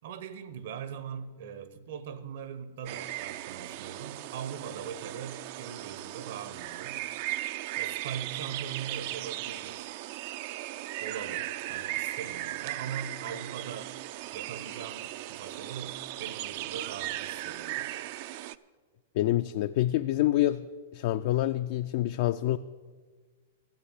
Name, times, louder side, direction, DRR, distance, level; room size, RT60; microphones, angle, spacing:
voice 1, 0.0-7.0 7.8-9.8 11.0-14.0 14.3-17.9, right 7 dB, 65° right, 1.1 m, -41 dB
sound 1, 2.9-18.6, right 15 dB, 50° right, 0.4 m, -37 dB
voice 2, 19.2-20.7 20.9-22.6, left 14 dB, 55° left, 0.4 m, -26 dB
13.0 x 7.7 x 8.1 m
hypercardioid pair, 130°, 0 cm